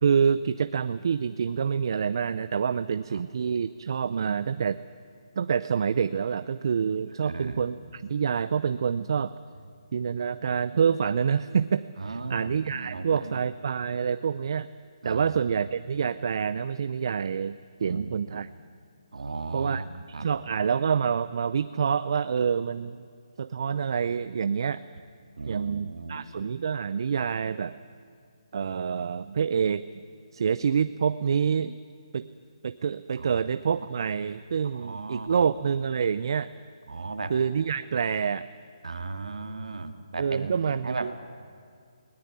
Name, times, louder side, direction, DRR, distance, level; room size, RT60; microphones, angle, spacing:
voice 1, 0.0-4.8 5.4-9.3 9.9-14.7 15.0-18.5 19.5-19.8 20.2-23.0 23.4-24.8 25.5-27.8 28.5-29.9 30.3-31.8 32.1-32.3 32.6-36.5 37.3-38.5 40.2-41.1, right 6 dB, 50° right, 14 dB, 0.5 m, -27 dB
voice 2, 7.2-7.6 12.0-13.5 15.0-15.3 17.8-18.2 19.1-20.3 25.4-26.2 33.2-33.3 34.7-35.4 36.9-37.3 38.8-40.6 40.8-41.1, right 3 dB, 90° right, 8 dB, 2.1 m, -36 dB
19.5 x 18.5 x 9.8 m, 2.3 s
hypercardioid pair, 170°, 3 cm